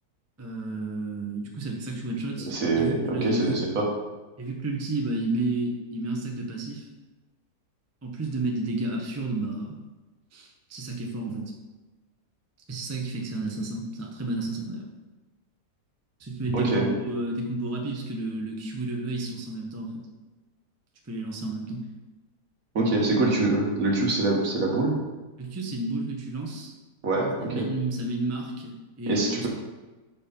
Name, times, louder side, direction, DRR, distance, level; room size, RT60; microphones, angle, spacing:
voice 1, 0.4-3.6 4.4-6.9 8.0-9.8 10.3-11.5 12.7-14.9 16.2-20.0 21.1-21.8 25.4-26.7 27.4-29.5, right 2 dB, 25° right, 0 dB, 0.3 m, -31 dB
voice 2, 2.5-3.8 16.5-16.9 22.7-25.0 27.0-27.7 29.1-29.5, right 2 dB, 55° right, -2 dB, 1.6 m, -24 dB
5.2 x 4.6 x 5.2 m, 1.2 s
omnidirectional pair, 1.8 m